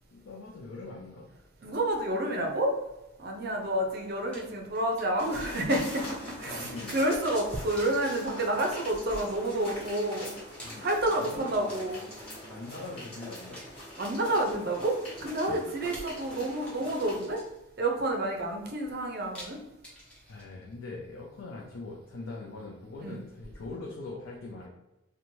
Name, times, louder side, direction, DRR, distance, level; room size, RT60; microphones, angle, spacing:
voice 1, 0.1-1.3 6.2-7.0 10.6-11.5 12.5-13.6 15.4-15.5 20.3-24.7, left 3 dB, 80° left, -2 dB, 0.5 m, -42 dB
voice 2, 1.6-2.8 3.2-10.3 10.8-12.0 14.0-17.4 17.8-19.6 23.0-23.2, right 1 dB, 50° right, 1 dB, 0.5 m, -29 dB
sound 1, 4.3-5.8 6.1-6.2 7.2-7.5 7.8-9.3 10.3-12.5 13.5-14.7 15.9-17.8 19.3-20.7, equal, 5° left, 0.6 m, -51 dB
sound 2, 5.2-17.2, left 1 dB, 25° left, 1.3 m, -43 dB
3.0 x 2.2 x 2.6 m, 0.94 s
head